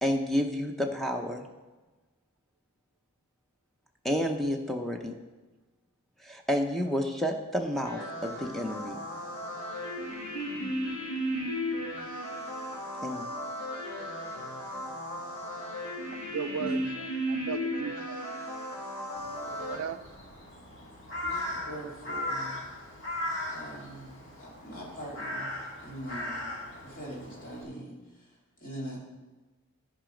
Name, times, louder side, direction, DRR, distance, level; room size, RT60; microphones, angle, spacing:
voice 1, 0.0-1.4 4.0-5.2 6.2-9.0 13.0-13.3, equal, ahead, 0.6 m, -30 dB
sound 1, 7.8-19.8, equal, 80° left, 2.7 m, -35 dB
voice 2, 16.1-18.2 19.5-20.0, right 7 dB, 75° right, 0.4 m, -37 dB
Crow, 19.2-27.6, left 1 dB, 55° left, 2.4 m, -38 dB
voice 3, 21.2-22.5 23.5-25.5 25.8-26.5 26.8-28.3 28.6-29.0, right 1 dB, 40° left, 2.6 m, -42 dB
12.5 x 4.9 x 5.1 m
head